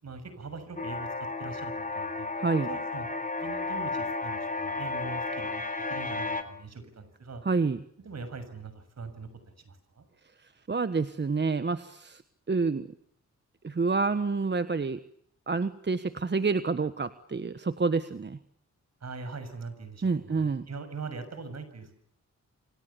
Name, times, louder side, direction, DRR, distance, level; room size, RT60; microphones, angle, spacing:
voice 1, 0.0-2.3 2.7-3.1 3.4-5.6 5.9-7.4 8.0-10.1 19.0-21.9, right 4 dB, 60° right, 11 dB, 6.8 m, -42 dB
sound 1, 0.8-6.4, left 3 dB, 25° left, 3.6 m, -33 dB
voice 2, 2.4-2.7 7.4-7.8 10.4-12.2 12.5-12.9 13.6-15.0 15.5-18.4 20.0-20.6, right 4 dB, 35° right, 11 dB, 1.4 m, -28 dB
28.5 x 26.5 x 7.1 m, 0.64 s
cardioid pair, 75°, 30 cm